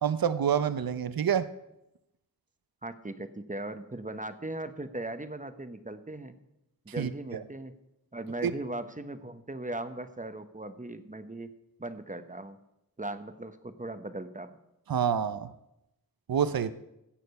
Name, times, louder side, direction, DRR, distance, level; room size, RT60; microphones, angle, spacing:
voice 1, 0.0-1.5 7.0-7.1 8.4-8.5 14.9-15.5 16.3-16.7, right 8 dB, 75° right, 13 dB, 0.6 m, -27 dB
voice 2, 2.8-6.3 6.8-7.7 8.1-11.5 11.8-12.6 13.0-14.6, right 2 dB, 20° right, 10 dB, 0.9 m, -38 dB
16.0 x 6.6 x 5.4 m, 0.88 s
wide cardioid pair, 60°, 36 cm